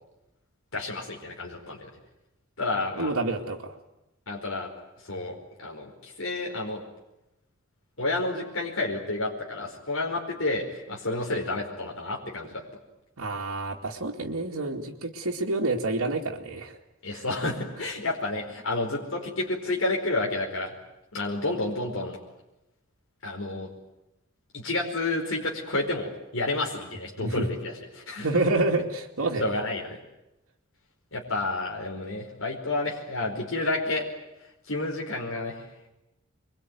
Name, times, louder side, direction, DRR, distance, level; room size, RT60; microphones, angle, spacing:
voice 1, 0.7-1.9 2.6-3.1 4.3-4.7 5.0-6.8 8.0-12.6 17.0-20.7 21.1-22.2 23.2-23.7 24.5-28.4 29.4-30.0 31.1-34.1 34.7-35.6, left 2 dB, 70° left, -1 dB, 4.8 m, -30 dB
voice 2, 3.0-3.8 13.2-16.7 17.1-17.2 27.2-27.4 28.2-29.6, right 2 dB, 85° right, -3 dB, 2.5 m, -28 dB
26.5 x 23.0 x 9.5 m, 0.93 s
head